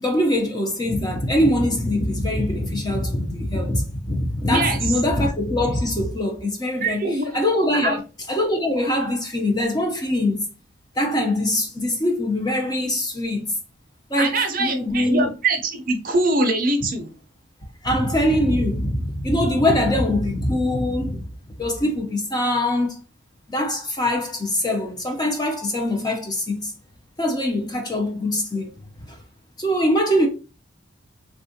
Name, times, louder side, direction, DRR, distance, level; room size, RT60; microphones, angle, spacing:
voice 1, 0.0-7.1 7.3-8.0 8.3-10.4 11.0-13.5 14.1-15.3 17.8-21.3 21.6-23.0 23.5-26.7 27.2-28.7 29.1-29.2 29.6-30.3, left 1 dB, 20° left, 0.6 m, -22 dB
voice 2, 4.5-4.8 6.8-7.4 7.8-8.0 14.2-17.1, right 2 dB, 45° right, 0.6 m, -23 dB
3.5 x 2.4 x 2.7 m
head